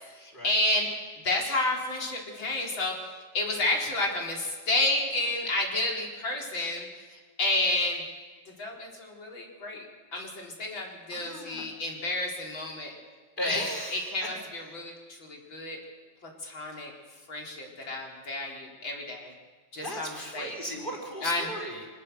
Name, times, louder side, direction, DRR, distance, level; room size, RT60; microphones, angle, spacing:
voice 1, 0.1-0.9 1.2-8.0 8.6-9.9 10.1-12.9 13.4-15.8 16.2-16.9 17.3-19.3 19.7-20.6 21.2-21.5, left 2 dB, 70° left, -1 dB, 4.8 m, -31 dB
voice 2, 11.1-11.6 13.4-14.3 19.8-21.8, equal, 25° left, -1 dB, 5.3 m, -36 dB
26.0 x 18.5 x 6.9 m, 1.4 s
omnidirectional pair, 2.2 m